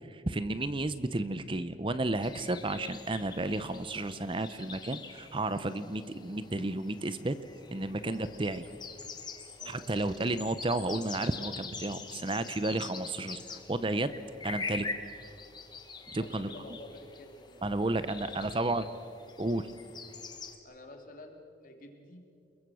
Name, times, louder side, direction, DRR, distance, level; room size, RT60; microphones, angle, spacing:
voice 1, 0.1-7.4 7.7-8.6 9.7-14.9 16.1-16.5 17.6-18.9 19.4-19.7, right 2 dB, 30° right, 13 dB, 0.7 m, -32 dB
sound 1, 2.2-20.6, left 4 dB, 25° left, 1.7 m, -45 dB
voice 2, 16.2-18.9 20.6-22.2, left 1 dB, 50° left, 2 dB, 3.0 m, -50 dB
29.5 x 22.0 x 6.3 m, 2.7 s
head